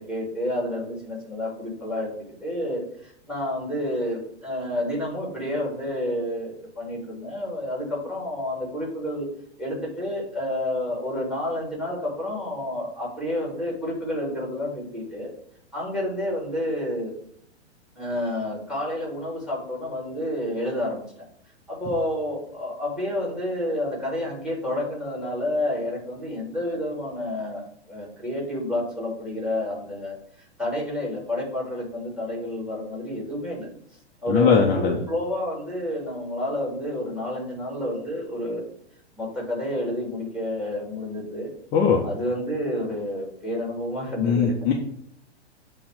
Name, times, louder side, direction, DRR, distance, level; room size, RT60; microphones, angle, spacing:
voice 1, 0.0-9.3 9.6-15.3 15.7-17.1 17.9-21.0 21.7-27.6 27.9-30.1 30.6-33.7 34.2-38.6 39.2-41.5 42.0-44.5, left 1 dB, ahead, -2 dB, 2.9 m, -29 dB
voice 2, 34.3-35.0 41.7-42.0 44.2-44.7, left 6 dB, 25° left, -1 dB, 1.0 m, -20 dB
8.6 x 3.3 x 6.2 m, 0.66 s
figure-of-eight pair, 110°, 34 cm